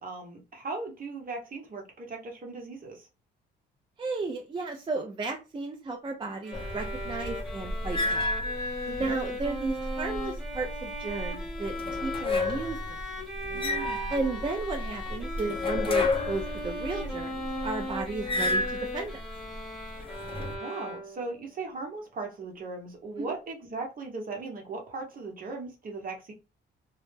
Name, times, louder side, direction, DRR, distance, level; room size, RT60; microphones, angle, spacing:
voice 1, 0.0-3.1 8.8-9.1 13.5-14.2 20.6-26.3, right 3 dB, 45° right, 0.9 m, -38 dB
voice 2, 4.0-8.3 9.0-11.7 12.0-12.8 14.1-19.2 23.2-23.3, right 3 dB, 25° right, 0.4 m, -34 dB
sound 1, 6.4-21.4, left 1 dB, ahead, 0.8 m, -38 dB
sound 2, 6.5-20.6, left 2 dB, 25° left, 0.6 m, -32 dB
2.1 x 2.0 x 3.1 m
cardioid pair, 90°, 20 cm